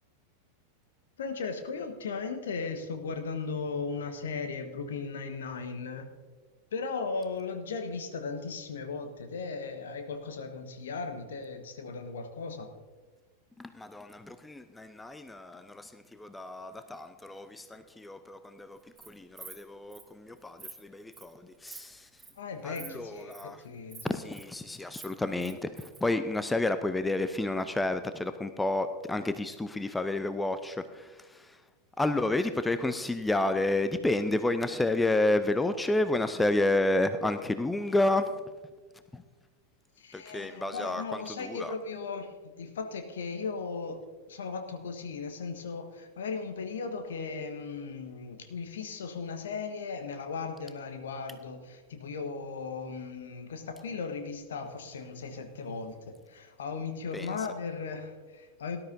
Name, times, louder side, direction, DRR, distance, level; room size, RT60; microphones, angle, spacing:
voice 1, 1.2-6.1 6.7-12.7 22.4-24.2 40.0-58.8, left 4 dB, 65° left, 7 dB, 1.3 m, -37 dB
voice 2, 13.6-18.8 19.1-22.2 22.6-23.6 24.0-31.6 32.0-38.3 39.1-39.2 40.1-41.7 57.1-57.3, left 2 dB, 5° left, 10 dB, 0.6 m, -30 dB
Insect, 18.8-19.1 19.4-19.6 19.9-20.0 20.4-20.7 21.1-21.3 21.7-21.9 22.2-22.4 22.7-22.9 23.2-23.4 23.9-24.4 24.7-26.0, right 5 dB, 10° right, 2.5 m, -46 dB
18.0 x 12.0 x 2.7 m, 1.3 s
figure-of-eight pair, 90°, 0 cm